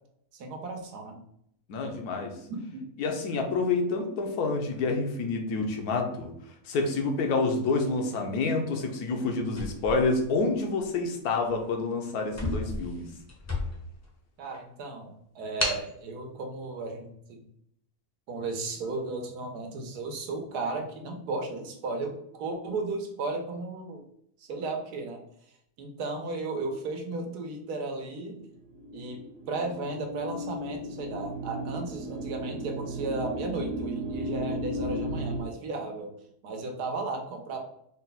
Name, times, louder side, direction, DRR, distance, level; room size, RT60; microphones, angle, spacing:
voice 1, 0.3-1.2 2.7-2.8 14.4-17.4 18.3-24.0 24.4-25.2 25.8-28.4 28.9-36.1 36.4-37.6, right 3 dB, 80° right, 3 dB, 1.3 m, -35 dB
voice 2, 1.7-2.3 3.0-6.3 6.6-13.1, left 3 dB, 75° left, 3 dB, 1.2 m, -28 dB
sound 1, 9.5-10.8 11.4-11.6 11.9-12.0 12.3-14.0 14.5-14.6 15.6-15.9, left 2 dB, 20° left, 0.4 m, -33 dB
sound 2, 28.4-35.4, equal, 50° right, 1.0 m, -35 dB
4.0 x 2.2 x 4.0 m, 0.70 s
omnidirectional pair, 1.7 m